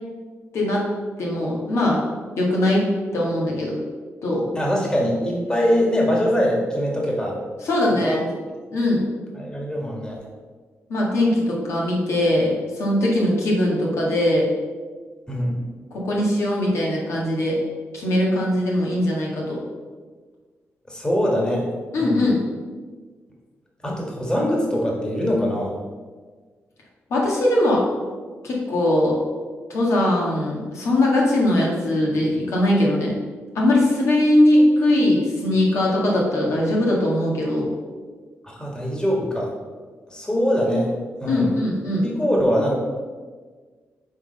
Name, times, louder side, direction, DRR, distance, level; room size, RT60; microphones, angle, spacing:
voice 1, 0.5-0.8 1.2-2.0 2.4-2.8 3.1-3.8 4.2-4.5 7.6-8.2 8.7-9.0 10.9-14.5 15.9-17.6 17.9-19.6 21.9-22.4 27.1-27.8 28.4-29.2 29.7-33.1 33.6-37.7 41.3-42.0, left 1 dB, 80° left, -3 dB, 1.7 m, -20 dB
voice 2, 4.6-7.4 8.0-8.2 9.3-10.2 15.3-15.6 20.9-21.7 22.0-22.3 23.8-25.7 38.4-39.5 40.1-40.9 41.2-41.5 42.2-42.7, equal, 15° left, -2 dB, 1.6 m, -22 dB
6.3 x 3.8 x 5.2 m, 1.5 s
cardioid pair, 90°, 5 cm